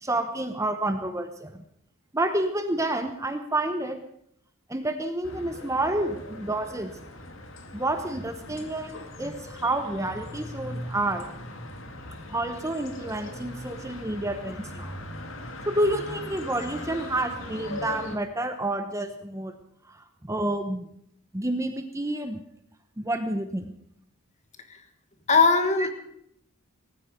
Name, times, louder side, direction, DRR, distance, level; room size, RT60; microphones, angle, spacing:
voice 1, 0.0-1.5 2.1-4.0 4.7-6.9 7.7-11.3 12.3-15.0 15.7-19.5 19.9-20.9 21.3-22.4 23.0-23.7 25.8-25.9, right 1 dB, 15° right, 8 dB, 0.9 m, -29 dB
sound 1, 5.2-18.2, left 1 dB, 60° left, 2.2 m, -40 dB
voice 2, 25.3-25.9, left 4 dB, 30° left, 8 dB, 1.6 m, -20 dB
18.5 x 15.0 x 5.2 m, 0.73 s
head